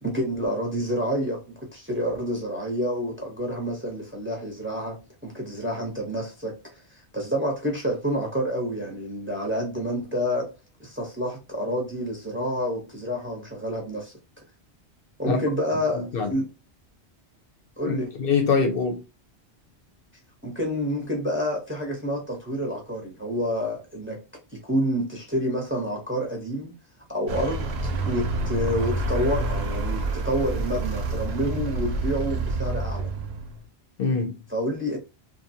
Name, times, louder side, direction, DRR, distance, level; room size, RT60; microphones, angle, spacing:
voice 1, 0.0-5.0 5.2-10.5 10.8-14.1 15.2-16.5 17.8-18.1 20.4-24.2 24.5-26.7 27.1-33.1 34.5-35.0, equal, 15° right, 0.6 m, -28 dB
voice 2, 15.9-16.3 17.9-19.0 34.0-34.4, left 5 dB, 65° left, 0.7 m, -24 dB
Vehicle, 27.3-33.6, right 2 dB, 70° right, 0.8 m, -28 dB
2.6 x 2.1 x 2.7 m
omnidirectional pair, 1.1 m